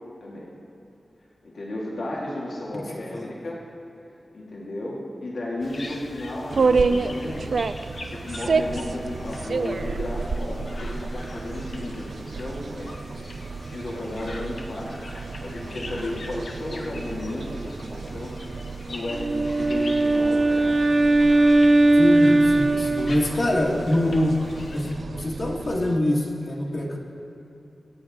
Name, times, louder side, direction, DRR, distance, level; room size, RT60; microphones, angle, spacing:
voice 1, 0.2-0.5 1.4-3.6 4.3-7.5 8.0-12.9 13.6-14.9 15.4-18.3 18.9-20.7, left 1 dB, 85° left, -4 dB, 2.1 m, -33 dB
sound 1, 5.6-24.9, left 2 dB, 70° left, 1.1 m, -42 dB
sound 2, 6.5-26.0, right 4 dB, 75° right, 0.4 m, -30 dB
Wind instrument woodwind instrument, 19.1-23.6, right 2 dB, 50° right, 0.9 m, -19 dB
voice 2, 22.0-24.4 24.7-27.0, left 1 dB, 55° left, -3 dB, 1.8 m, -25 dB
24.5 x 8.8 x 3.6 m, 2.8 s
wide cardioid pair, 95°, 0 cm